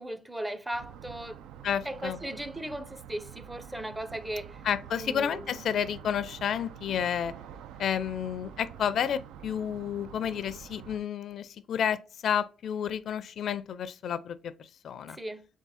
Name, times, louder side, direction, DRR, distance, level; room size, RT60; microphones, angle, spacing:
voice 1, 0.0-1.4 1.8-4.6 4.9-5.6 15.1-15.5, right 1 dB, 10° right, 0.5 m, -37 dB
sound 1, 0.7-11.0, right 9 dB, 90° right, 0.3 m, -47 dB
voice 2, 1.6-2.2 4.6-7.3 7.8-14.5 14.8-15.2, left 8 dB, 65° left, 0.4 m, -31 dB
3.6 x 3.6 x 4.0 m
cardioid pair, 90°, 0 cm